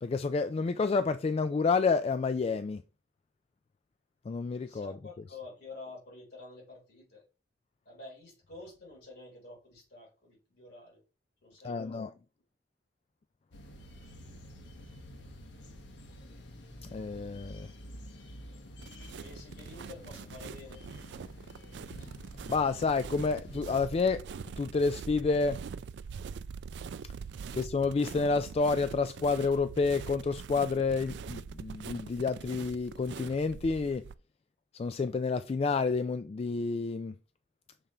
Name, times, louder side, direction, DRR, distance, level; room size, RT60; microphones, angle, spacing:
voice 1, 0.0-2.8 4.3-4.9 11.6-12.1 16.8-17.7 22.5-24.2 24.6-25.6 27.5-34.0 34.7-37.2, left 4 dB, 35° left, 0.3 m, -29 dB
voice 2, 4.6-7.3 7.9-11.0 11.4-12.1 19.2-20.9 22.0-22.2 27.4-27.6, left 3 dB, 65° left, 3.6 m, -49 dB
sound 1, 13.5-23.6, equal, 90° left, 1.1 m, -49 dB
sound 2, 18.8-34.1, right 6 dB, 75° right, 0.3 m, -44 dB
6.7 x 3.7 x 4.3 m
head